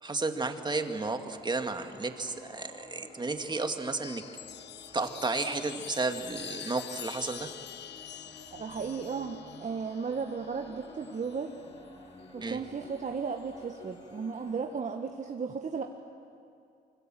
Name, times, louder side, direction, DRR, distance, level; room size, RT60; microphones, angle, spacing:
voice 1, 0.0-4.2 4.9-7.5 12.4-12.6, right 3 dB, 20° right, 6 dB, 2.0 m, -32 dB
sound 1, 0.9-14.5, left 1 dB, 30° left, 5.9 m, -53 dB
Chime, 3.8-11.6 12.8-13.5, left 10 dB, 60° left, 0.8 m, -46 dB
voice 2, 8.6-11.5 12.3-15.8, right 5 dB, 40° right, 3 dB, 1.5 m, -35 dB
25.0 x 25.0 x 7.7 m, 2.5 s
cardioid pair, 90°, 20 cm